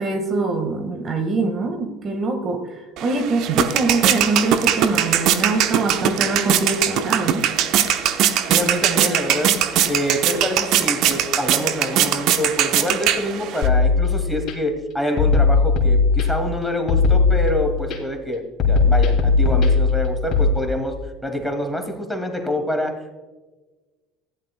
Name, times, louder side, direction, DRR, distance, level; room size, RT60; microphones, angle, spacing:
voice 1, 0.0-7.5, right 3 dB, 40° right, 6 dB, 1.5 m, -24 dB
sound 1, 3.0-13.7, right 10 dB, 60° right, 0.8 m, -21 dB
voice 2, 8.5-21.0 21.2-23.1, equal, ahead, 4 dB, 2.2 m, -26 dB
sound 2, 13.6-14.5 15.2-16.5 16.9-18.0 18.6-20.5, left 4 dB, 50° left, 2.6 m, -18 dB
15.5 x 11.0 x 2.2 m, 1.2 s
hypercardioid pair, 75°, 0 cm